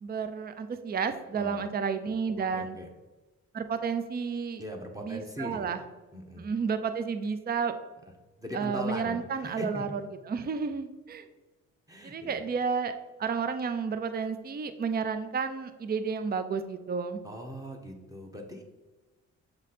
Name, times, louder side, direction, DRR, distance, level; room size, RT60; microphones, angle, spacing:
voice 1, 0.0-2.8 3.5-4.6 5.0-5.8 6.4-7.7 8.5-10.0 10.3-11.2 12.0-12.9 13.2-17.2, right 5 dB, 30° right, 10 dB, 0.5 m, -31 dB
voice 2, 1.3-1.7 2.5-2.9 4.6-5.7 6.1-6.5 8.4-9.9 11.9-12.4 17.2-18.6, equal, 10° right, 2 dB, 1.0 m, -39 dB
7.6 x 3.1 x 4.2 m, 1.2 s
cardioid pair, 90°, 30 cm